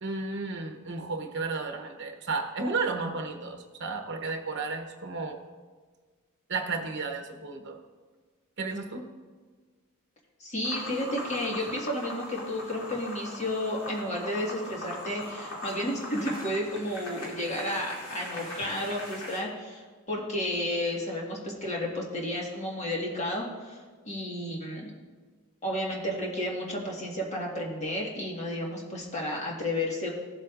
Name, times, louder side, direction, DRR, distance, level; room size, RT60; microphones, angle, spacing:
voice 1, 0.0-5.4 6.5-7.8 8.6-9.1, right 4 dB, 55° right, 4 dB, 1.0 m, -33 dB
voice 2, 10.4-24.9 25.6-30.1, left 1 dB, 30° left, -2 dB, 1.7 m, -32 dB
sound 1, 10.6-19.4, left 1 dB, 75° left, 2.7 m, -40 dB
15.5 x 7.6 x 2.5 m, 1.5 s
head